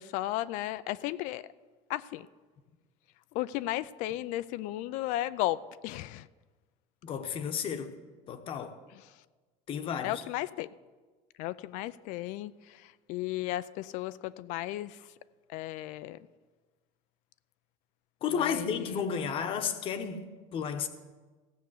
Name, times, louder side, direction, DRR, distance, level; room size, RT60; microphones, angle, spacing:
voice 1, 0.0-1.4 1.9-2.3 3.3-6.3 8.9-9.0 10.0-10.7 11.4-15.0 15.5-16.2 18.3-19.0, left 15 dB, 60° left, 0.4 m, -35 dB
voice 2, 7.0-7.9 8.3-8.8 9.7-10.2 18.2-20.9, left 7 dB, 35° left, 1.0 m, -33 dB
15.5 x 6.8 x 7.9 m
cardioid pair, 155°, 15 cm